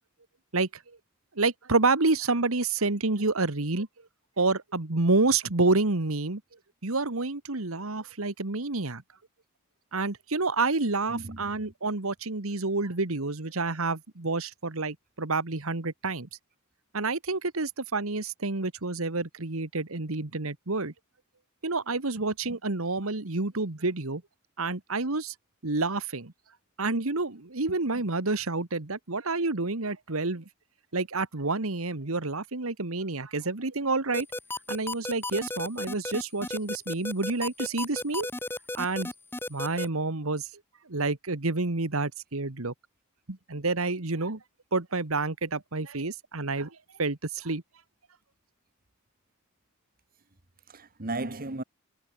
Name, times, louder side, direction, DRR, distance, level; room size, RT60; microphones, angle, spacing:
voice 1, 0.5-1.0 1.4-3.9 4.4-6.4 6.8-9.0 9.9-16.3 16.9-20.9 21.6-24.2 24.6-25.3 25.6-26.3 26.8-30.4 30.9-34.3 34.7-38.3 38.8-39.1 39.5-40.5 40.9-42.7 43.3-44.4 44.7-47.6, right 3 dB, 75° right, 1.7 m, -29 dB
voice 2, 11.1-11.7 50.7-51.6, right 2 dB, 45° right, 1.7 m, -35 dB
sound 1, 34.1-39.9, left 2 dB, 10° left, 1.9 m, -33 dB
head